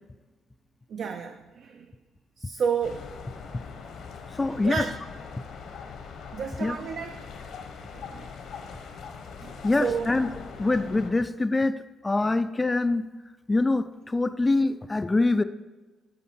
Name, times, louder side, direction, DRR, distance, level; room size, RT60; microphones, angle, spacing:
voice 1, 0.9-1.9 2.4-3.0 4.6-4.9 6.3-7.3 7.9-8.3 9.4-10.1 12.2-12.3, right 6 dB, 65° right, 6 dB, 0.4 m, -31 dB
sound 1, 2.8-11.1, left 5 dB, 80° left, 1.1 m, -41 dB
voice 2, 4.3-4.9 6.6-6.8 9.6-10.3 10.6-13.1 13.5-15.4, left 2 dB, 20° left, 11 dB, 0.3 m, -24 dB
10.5 x 4.1 x 4.5 m, 1.2 s
cardioid pair, 90°, 0 cm